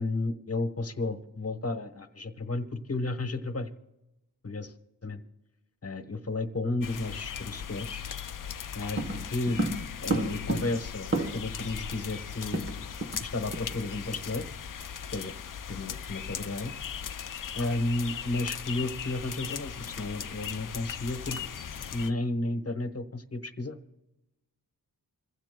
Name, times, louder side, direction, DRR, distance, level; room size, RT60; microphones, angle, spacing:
voice 1, 0.0-3.7 4.4-4.7 5.0-5.2 5.8-8.0 8.7-9.0 9.3-9.7 10.0-12.9 13.2-14.5 15.1-15.3 15.7-16.7 17.5-21.4 21.9-23.8, left 2 dB, 35° left, 9 dB, 1.1 m, -32 dB
sound 1, 6.8-22.1, left 8 dB, 55° left, 0.6 m, -38 dB
sound 2, 9.0-11.6 11.9-12.0 12.2-13.3 13.5-13.7 14.1-14.3, right 2 dB, 30° right, 1.1 m, -32 dB
26.5 x 15.5 x 2.2 m, 0.99 s
wide cardioid pair, 65°, 40 cm